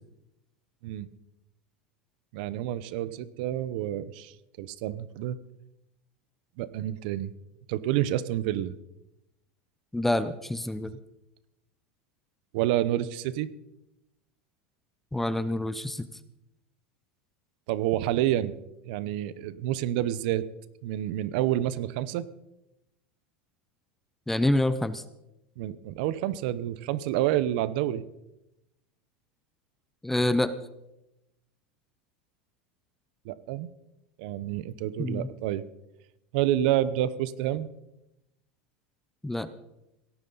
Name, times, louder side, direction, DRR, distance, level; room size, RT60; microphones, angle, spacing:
voice 1, 2.3-5.4 6.6-7.3 7.7-8.7 12.5-13.5 17.7-18.6 18.8-20.5 20.8-22.3 25.6-28.0 33.3-33.7 34.2-35.6 36.3-37.7, right 13 dB, 55° right, 17 dB, 0.7 m, -28 dB
voice 2, 9.9-11.0 15.1-16.1 24.3-25.0 30.0-30.5 35.0-35.3 39.2-39.5, left 1 dB, 5° left, 13 dB, 0.5 m, -27 dB
17.5 x 13.5 x 4.0 m, 0.89 s
supercardioid pair, 160°, 6 cm